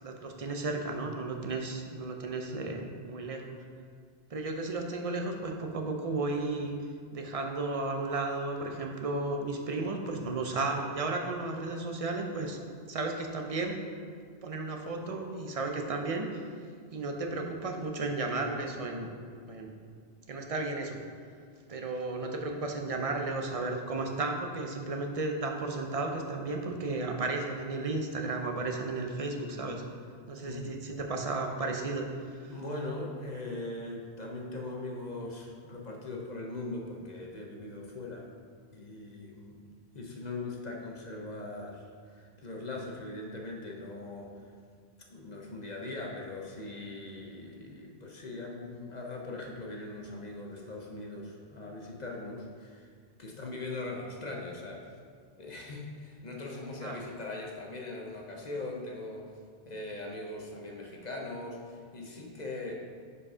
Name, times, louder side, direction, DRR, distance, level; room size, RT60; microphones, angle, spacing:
voice 1, 0.0-3.6 4.3-6.7 7.1-12.6 12.9-13.8 14.4-16.4 16.9-19.1 19.4-19.7 20.3-21.0 21.7-29.8 30.3-32.5 56.8-56.9, right 3 dB, 40° right, 3 dB, 0.6 m, -34 dB
voice 2, 30.4-30.8 32.5-38.3 38.7-39.6 39.9-44.5 45.1-52.9 53.2-55.0 55.4-59.3 59.7-62.8, left 2 dB, 45° left, 0 dB, 0.8 m, -40 dB
5.1 x 4.9 x 5.4 m, 2.1 s
omnidirectional pair, 1.1 m